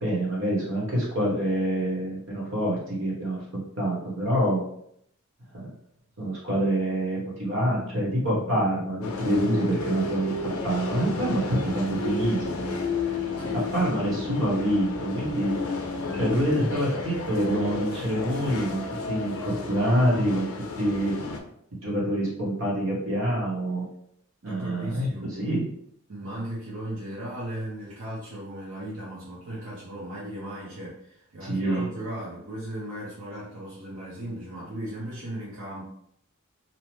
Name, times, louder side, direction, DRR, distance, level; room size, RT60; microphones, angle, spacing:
voice 1, 0.0-4.6 6.2-10.3 10.6-12.8 13.7-15.5 16.1-18.8 19.1-20.5 20.8-21.1 21.8-23.8 24.4-25.1 25.4-25.6 31.4-31.9, right 1 dB, 65° right, -5 dB, 1.1 m, -26 dB
Organ, 7.3-18.1, right 1 dB, 30° right, 1.0 m, -44 dB
sound 1, 9.0-21.4, left 3 dB, 90° left, 0.4 m, -32 dB
voice 2, 24.4-25.3 26.1-35.9, right 1 dB, 90° right, -7 dB, 0.8 m, -37 dB
2.7 x 2.1 x 3.1 m, 0.69 s
head